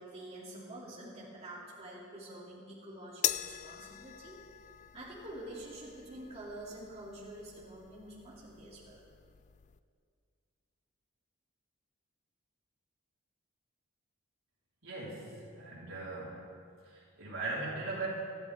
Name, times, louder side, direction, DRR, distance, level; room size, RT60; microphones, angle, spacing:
voice 1, 0.0-4.4 4.9-9.0, right 1 dB, 30° right, -7 dB, 3.0 m, -47 dB
sound 1, 3.2-9.8, left 12 dB, 35° left, 0.3 m, -42 dB
voice 2, 14.8-16.4 16.8-18.1, right 2 dB, 75° right, -6 dB, 4.3 m, -39 dB
21.5 x 14.0 x 3.7 m, 2.3 s
head